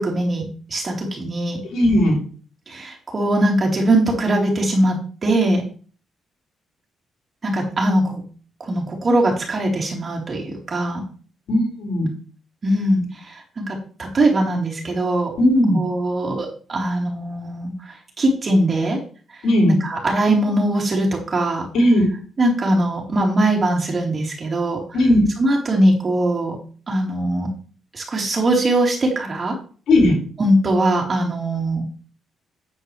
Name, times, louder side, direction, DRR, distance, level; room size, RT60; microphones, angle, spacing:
voice 1, 0.0-1.6 2.7-5.6 7.4-8.2 8.6-11.0 12.6-15.3 15.7-19.0 19.7-21.7 22.4-24.8 25.4-26.6 26.9-27.5 27.9-29.5 30.4-31.8, right 1 dB, 35° right, -1 dB, 4.0 m, -21 dB
voice 2, 1.7-2.1 11.5-12.1 15.4-15.8 19.4-19.7 21.7-22.0 24.9-25.2 29.9-30.2, left 1 dB, 70° left, -2 dB, 6.2 m, -16 dB
9.8 x 9.3 x 3.4 m, 0.40 s
cardioid pair, 90°, 0 cm